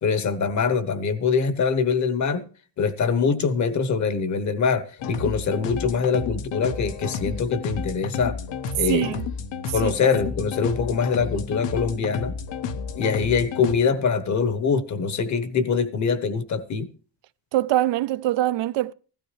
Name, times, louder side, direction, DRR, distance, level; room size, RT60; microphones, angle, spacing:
voice 1, 0.0-2.4 2.8-8.4 8.8-9.2 9.7-12.4 12.9-16.9, left 5 dB, 40° left, 1.0 m, -23 dB
sound 1, 5.0-13.8, left 5 dB, 85° left, 1.2 m, -31 dB
voice 2, 8.9-9.2 9.8-9.9 17.5-18.9, right 14 dB, 90° right, 0.6 m, -23 dB
16.0 x 13.0 x 3.2 m
cardioid pair, 170°, 42 cm